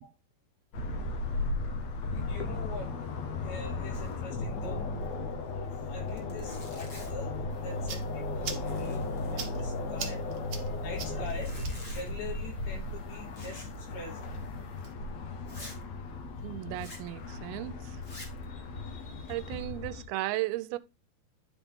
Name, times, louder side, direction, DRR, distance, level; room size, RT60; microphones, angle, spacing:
sound 1, 0.7-20.0, left 2 dB, 65° left, 1.8 m, -36 dB
voice 1, 2.1-2.9 3.4-4.8 5.5-14.2 16.5-16.6 18.5-19.6, left 4 dB, 85° left, 4.9 m, -44 dB
Zipper (clothing), 3.9-4.3 4.6-4.7 5.0-5.1 5.7-5.8 6.1-7.3 7.9-8.1 8.4-9.8 11.1-12.1 13.3-13.8 14.1-14.3 14.8-14.9 15.4-15.8 16.7-17.1 18.0-18.4 19.0-19.6, left 1 dB, 30° left, 1.3 m, -49 dB
Lighter strike, 7.5-14.9, right 7 dB, 60° right, 1.7 m, -46 dB
voice 2, 16.4-18.0 19.3-20.8, right 16 dB, 90° right, 2.5 m, -35 dB
10.5 x 4.0 x 3.6 m
omnidirectional pair, 4.3 m